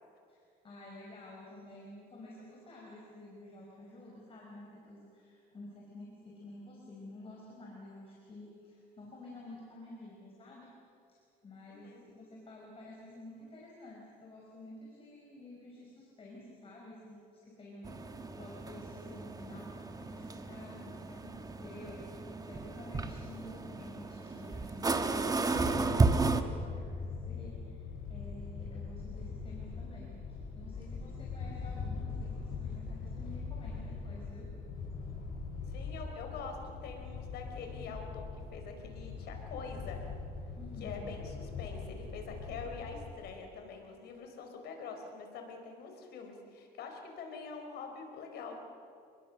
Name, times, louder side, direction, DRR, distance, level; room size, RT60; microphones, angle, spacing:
voice 1, 0.3-10.7 11.4-18.0 18.3-34.5 40.6-41.0, left 2 dB, 35° left, -3 dB, 5.5 m, -51 dB
voice 2, 11.7-12.1 17.9-18.3 35.7-40.0 40.8-48.6, left 4 dB, 75° left, 4 dB, 4.6 m, -45 dB
sound 1, 17.8-26.4, right 3 dB, 20° right, 1.4 m, -33 dB
sound 2, 25.5-43.1, left 4 dB, 55° left, 7.6 m, -42 dB
30.0 x 21.0 x 6.6 m, 2.4 s
cardioid pair, 110°, 17 cm